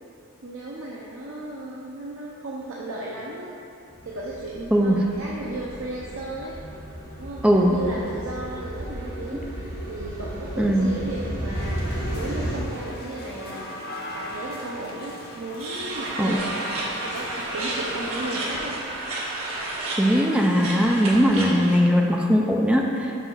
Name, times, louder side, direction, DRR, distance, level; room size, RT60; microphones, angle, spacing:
voice 1, 0.4-3.6 4.0-6.6 7.2-13.6 14.1-16.7 17.0-18.8, right 2 dB, 70° right, -4 dB, 0.8 m, -35 dB
sound 1, 3.9-12.6, right 1 dB, 50° right, 1.9 m, -34 dB
voice 2, 10.6-10.9 16.2-16.4 20.0-23.2, equal, 5° right, 0 dB, 0.4 m, -19 dB
sound 2, 11.5-18.5, left 1 dB, 45° left, 1.0 m, -39 dB
sound 3, 15.6-21.8, right 2 dB, 90° right, 1.4 m, -31 dB
6.2 x 5.8 x 5.6 m, 2.7 s
head